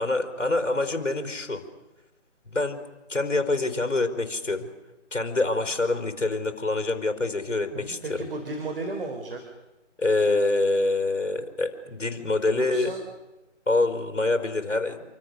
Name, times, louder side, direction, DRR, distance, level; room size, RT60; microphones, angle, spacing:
voice 1, 0.0-1.6 2.5-2.8 3.1-4.7 5.1-8.3 10.0-12.9 13.7-15.1, left 2 dB, 75° left, 6 dB, 4.5 m, -26 dB
voice 2, 7.7-9.4 12.5-13.0, right 2 dB, 45° right, 4 dB, 3.7 m, -34 dB
28.0 x 25.5 x 6.7 m, 1.0 s
figure-of-eight pair, 155°, 37 cm